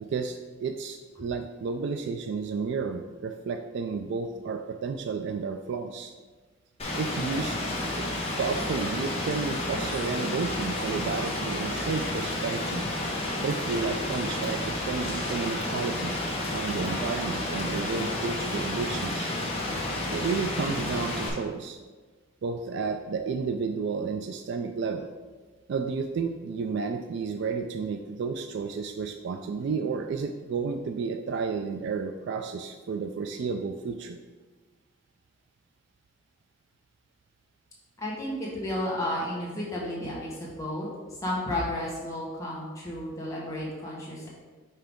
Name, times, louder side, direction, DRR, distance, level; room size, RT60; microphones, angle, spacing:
voice 1, 0.1-6.1 7.0-8.1 8.4-12.9 13.4-19.3 20.1-21.8 22.4-25.1 25.7-34.2, right 5 dB, 60° right, 6 dB, 0.3 m, -32 dB
Rain, 6.8-21.3, left 1 dB, 30° left, 1.2 m, -31 dB
voice 2, 38.0-40.9 41.2-44.3, left 1 dB, 15° left, -6 dB, 1.5 m, -32 dB
5.7 x 4.7 x 3.6 m, 1.3 s
head